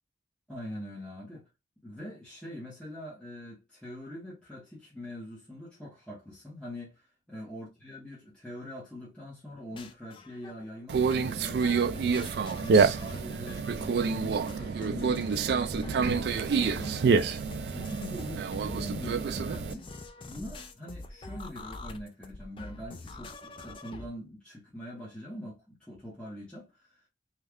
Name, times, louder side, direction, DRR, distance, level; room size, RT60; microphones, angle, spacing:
voice 1, 0.5-1.5 1.8-12.3 12.6-19.9 20.2-27.1, equal, 5° left, 1.0 m, -43 dB
sound 1, 9.5-10.8 11.1-11.2 11.6-24.1, left 2 dB, 30° left, 0.4 m, -44 dB
Conversation, 10.9-19.7, right 5 dB, 60° right, 0.3 m, -27 dB
3.1 x 2.3 x 3.4 m
head